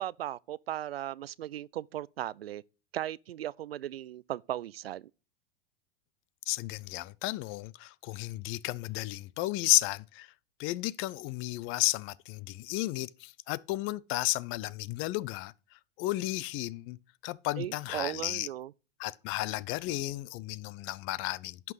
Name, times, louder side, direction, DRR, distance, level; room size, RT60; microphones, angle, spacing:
voice 1, 0.0-2.6 2.9-5.1 17.6-18.7, right 12 dB, 85° right, 0.5 m, -37 dB
voice 2, 6.5-10.3 10.6-15.5 16.0-17.0 17.2-18.5 19.0-21.7, left 18 dB, 45° left, 0.6 m, -33 dB
11.0 x 6.1 x 4.9 m
hypercardioid pair, 95°, 30 cm